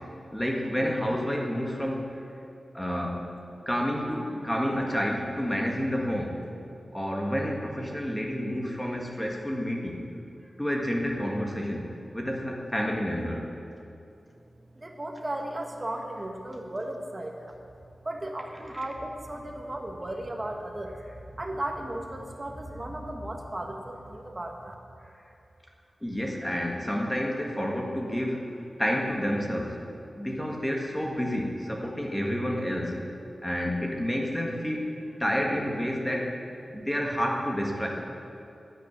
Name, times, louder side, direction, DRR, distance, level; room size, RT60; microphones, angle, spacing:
voice 1, 0.3-2.2 2.7-3.3 3.7-6.4 6.9-10.0 10.6-11.9 12.1-13.5 26.0-28.4 28.8-29.8 30.2-33.0 33.4-36.3 36.7-37.9, equal, 10° left, 0 dB, 1.8 m, -29 dB
voice 2, 14.7-17.6 18.0-21.0 21.3-24.7, right 1 dB, 25° right, 2 dB, 1.7 m, -35 dB
12.0 x 9.9 x 9.3 m, 2.7 s
wide cardioid pair, 100°, 0 cm